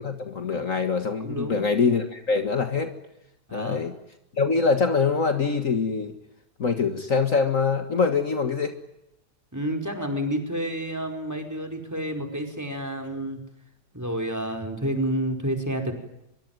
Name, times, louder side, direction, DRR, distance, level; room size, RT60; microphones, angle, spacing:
voice 1, 0.0-2.9 3.5-3.9 4.3-6.2 6.6-8.7, left 5 dB, 50° left, 7 dB, 2.1 m, -24 dB
voice 2, 1.2-1.6 3.5-3.8 9.5-13.4 13.9-15.9, right 1 dB, 10° right, 6 dB, 4.9 m, -29 dB
24.5 x 23.5 x 9.2 m, 0.85 s
omnidirectional pair, 1.8 m